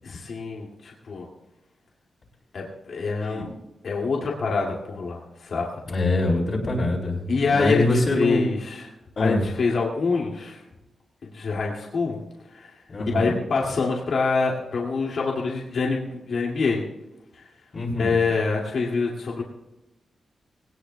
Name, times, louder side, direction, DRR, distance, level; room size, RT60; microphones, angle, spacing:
voice 1, 0.0-1.3 2.5-3.5 3.8-5.7 7.3-8.9 9.2-10.6 11.2-12.2 12.5-12.7 13.1-16.8 17.3-17.4 18.0-19.4, left 4 dB, 65° left, -2 dB, 2.3 m, -25 dB
voice 2, 5.8-8.4 9.2-9.4 12.9-13.3 17.7-18.1, left 2 dB, 45° left, -5 dB, 3.3 m, -24 dB
20.0 x 18.5 x 2.3 m, 0.96 s
wide cardioid pair, 130°, 0 cm